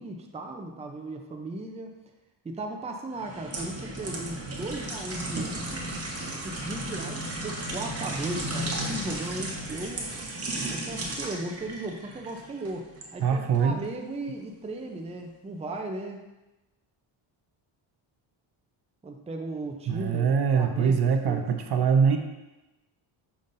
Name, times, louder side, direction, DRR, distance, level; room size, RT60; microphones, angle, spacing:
voice 1, 0.0-1.9 2.4-5.9 6.4-10.1 10.7-16.2 19.0-21.5, right 2 dB, 15° right, 3 dB, 0.6 m, -36 dB
sound 1, 3.1-13.1 13.5-13.7, right 1 dB, 30° right, 1.2 m, -34 dB
voice 2, 13.2-13.8 19.9-22.2, right 6 dB, 55° right, 6 dB, 0.7 m, -23 dB
7.0 x 5.5 x 2.6 m, 1.0 s
cardioid pair, 115°, 48 cm